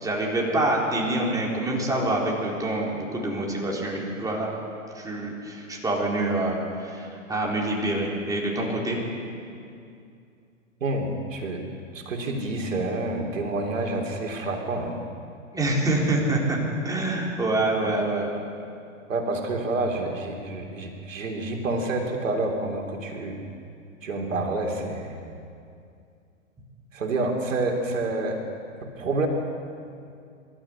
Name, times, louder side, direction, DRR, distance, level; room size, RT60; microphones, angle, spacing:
voice 1, 0.0-4.6 4.9-9.0 15.5-16.6 16.8-18.3, right 2 dB, 10° right, -2 dB, 4.1 m, -26 dB
voice 2, 10.8-11.6 11.9-15.0 19.1-23.4 24.0-25.2 26.9-28.4 28.8-29.3, right 2 dB, 70° right, 2 dB, 3.3 m, -28 dB
25.0 x 13.0 x 8.6 m, 2.5 s
hypercardioid pair, 110°, 39 cm